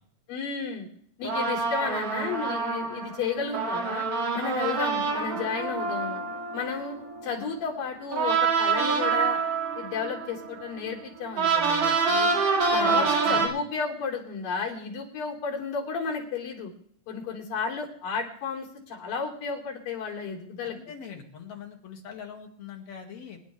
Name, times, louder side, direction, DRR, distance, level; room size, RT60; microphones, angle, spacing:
voice 1, 0.3-0.9 1.2-4.0 4.3-6.2 6.5-7.0 7.2-9.4 9.8-12.3 12.7-16.7 17.1-20.8, left 5 dB, 70° left, -2 dB, 4.8 m, -32 dB
sound 1, 1.2-7.6 8.1-13.5, right 5 dB, 45° right, 2.8 m, -27 dB
voice 2, 12.8-13.6 20.6-23.4, left 7 dB, 55° left, 1 dB, 2.8 m, -41 dB
26.5 x 10.0 x 3.3 m, 0.63 s
omnidirectional pair, 4.1 m